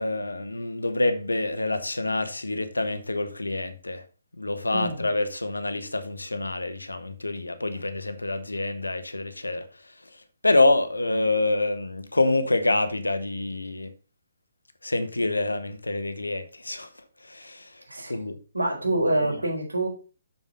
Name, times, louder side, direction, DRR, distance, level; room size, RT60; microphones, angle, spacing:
voice 1, 0.0-4.0 4.4-9.7 10.4-13.9 14.8-16.9 17.3-17.7 18.1-18.3, left 2 dB, 85° left, 1.3 m, -26 dB
voice 2, 17.9-18.2 18.5-19.9, right 2 dB, 85° right, 4.3 m, -26 dB
7.2 x 7.1 x 3.9 m
figure-of-eight pair, 135°, 0 cm